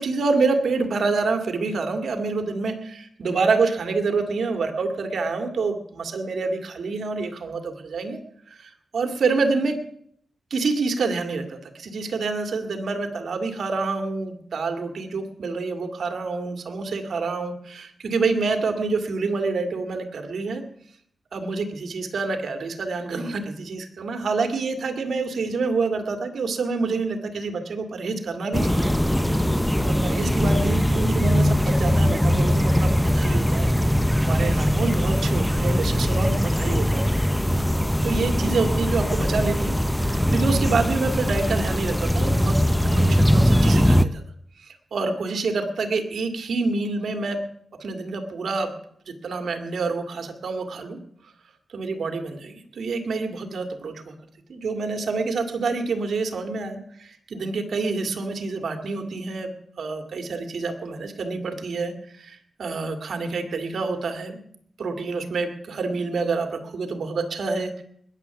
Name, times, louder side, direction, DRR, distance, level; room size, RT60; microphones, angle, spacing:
voice 1, 0.0-8.2 8.5-9.8 10.5-20.6 21.3-28.9 29.7-33.7 34.2-37.0 38.0-44.2 44.9-47.4 47.8-48.7 49.1-51.0 51.7-54.1 54.5-59.5 59.8-64.4 64.8-67.8, right 4 dB, 70° right, 7 dB, 2.2 m, -27 dB
sound 1, 28.5-44.0, equal, 5° left, 0.6 m, -21 dB
20.5 x 8.1 x 7.1 m, 0.67 s
wide cardioid pair, 100°, 0 cm